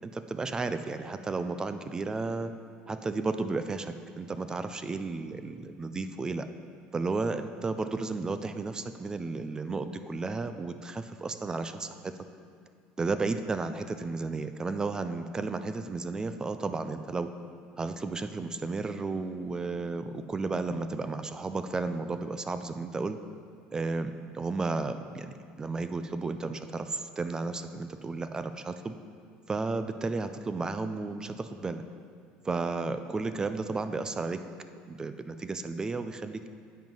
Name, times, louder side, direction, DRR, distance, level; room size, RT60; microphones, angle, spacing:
voice 1, 0.0-2.5 2.9-6.5 6.9-12.1 13.0-17.3 17.8-23.2 23.7-28.9 29.5-31.8 32.4-34.4 34.9-36.5, right 3 dB, 20° right, 10 dB, 0.4 m, -33 dB
10.0 x 7.4 x 3.9 m, 2.2 s
supercardioid pair, 110°, 4 cm